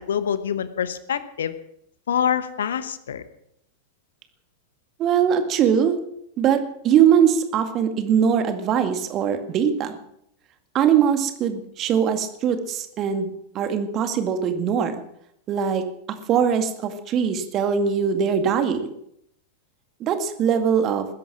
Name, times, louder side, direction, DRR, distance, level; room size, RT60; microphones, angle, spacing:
voice 1, 0.0-1.5 2.1-3.2, left 8 dB, 65° left, 14 dB, 1.0 m, -25 dB
voice 2, 5.0-6.0 6.4-10.0 10.7-15.0 15.5-15.8 16.3-18.9 20.0-21.1, right 8 dB, 35° right, 8 dB, 2.0 m, -21 dB
20.5 x 10.5 x 6.2 m, 0.74 s
figure-of-eight pair, 90°, 0 cm